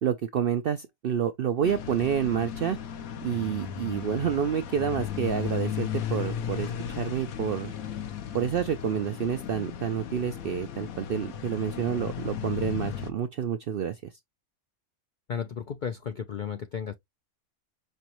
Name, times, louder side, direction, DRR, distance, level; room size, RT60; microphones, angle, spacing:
voice 1, 0.0-2.8 3.2-7.7 8.3-14.0, right 8 dB, 65° right, 0.5 m, -29 dB
sound 1, 1.6-13.1, left 9 dB, 85° left, 1.3 m, -35 dB
voice 2, 15.3-16.9, left 7 dB, 70° left, 0.4 m, -34 dB
5.5 x 3.0 x 2.9 m
omnidirectional pair, 1.4 m